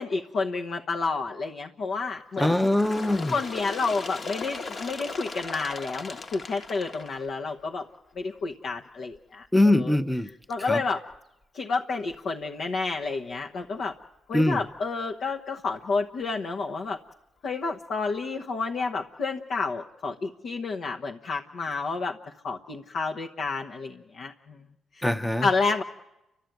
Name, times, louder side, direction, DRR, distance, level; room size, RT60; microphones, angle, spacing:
voice 1, 0.0-2.7 3.3-7.9 8.2-9.9 10.5-11.0 11.5-13.9 14.3-17.0 17.4-22.2 22.4-24.6 25.0-25.1 25.4-25.8, left 4 dB, 65° left, 1.1 m, -30 dB
Bird, 2.3-7.8 8.7-8.8 9.1-9.2 10.1-10.2 11.1-11.2 12.1-12.2, left 3 dB, 40° left, 1.4 m, -38 dB
voice 2, 2.4-3.4 9.5-10.3 10.6-10.8 14.3-14.6 25.0-25.5, left 1 dB, 5° left, 0.8 m, -22 dB
30.0 x 13.0 x 9.2 m
cardioid pair, 90°, 0 cm